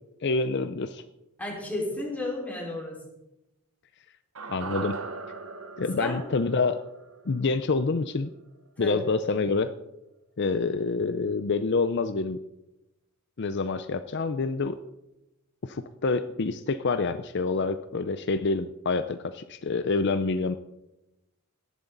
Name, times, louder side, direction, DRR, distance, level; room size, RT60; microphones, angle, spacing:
voice 1, 0.2-1.0 4.5-5.0 5.8-6.8 7.3-8.3 8.8-9.7 10.4-12.4 13.4-14.8 15.6-20.6, left 4 dB, 55° left, 10 dB, 0.6 m, -27 dB
voice 2, 1.4-3.0 6.0-6.2 8.8-9.0, left 1 dB, 5° left, -3 dB, 4.6 m, -32 dB
sound 1, 4.4-8.7 8.9-9.0, right 4 dB, 70° right, 1.2 m, -40 dB
18.0 x 11.5 x 4.0 m, 0.93 s
head